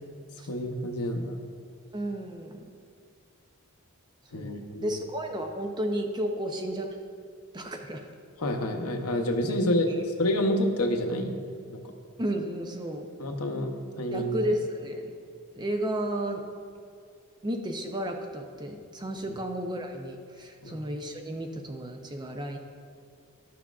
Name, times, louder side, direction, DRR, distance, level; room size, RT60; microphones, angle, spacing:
voice 1, 0.5-1.4 4.3-5.0 8.4-11.8 13.2-14.4 19.2-19.3 20.6-20.8, left 1 dB, 75° left, 4 dB, 0.7 m, -28 dB
voice 2, 1.9-2.6 4.3-4.5 4.8-7.0 7.5-8.1 12.2-13.1 14.1-15.1 15.6-16.4 17.4-22.6, right 1 dB, 20° right, 4 dB, 0.5 m, -32 dB
12.5 x 6.0 x 2.4 m, 2.2 s
head